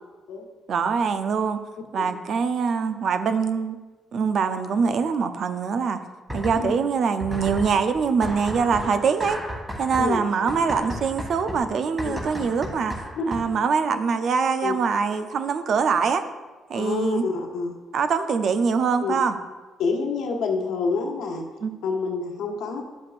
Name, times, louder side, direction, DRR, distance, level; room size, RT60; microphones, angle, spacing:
voice 1, 0.7-1.6 1.9-3.8 4.1-6.0 6.3-9.4 9.8-12.9 13.3-16.2 16.7-17.2 17.9-19.4 21.6-21.8, right 5 dB, 60° right, 9 dB, 0.6 m, -23 dB
sound 1, 6.3-6.9 7.2-13.7, equal, 15° right, 2.2 m, -34 dB
voice 2, 16.7-17.7 19.0-19.2 19.8-21.4 21.8-22.8, left 4 dB, 85° left, 1 dB, 1.3 m, -27 dB
11.0 x 7.4 x 2.5 m, 1.2 s
cardioid pair, 90°, 0 cm